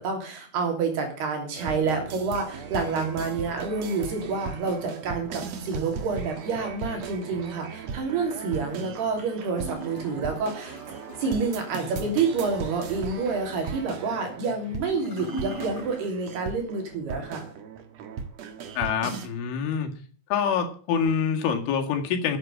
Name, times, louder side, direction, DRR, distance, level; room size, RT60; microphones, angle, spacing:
voice 1, 0.0-10.8 11.2-17.4, right 4 dB, 60° right, 2 dB, 5.1 m, -28 dB
sound 1, 1.5-19.3, right 6 dB, 85° right, 1.5 m, -38 dB
Gurgling / Toilet flush, 9.5-16.4 16.7-16.8, right 1 dB, 15° left, 5.9 m, -41 dB
voice 2, 18.8-19.9 20.3-22.4, left 7 dB, 90° left, 3 dB, 4.4 m, -26 dB
10.0 x 8.7 x 8.8 m, 0.42 s
omnidirectional pair, 5.4 m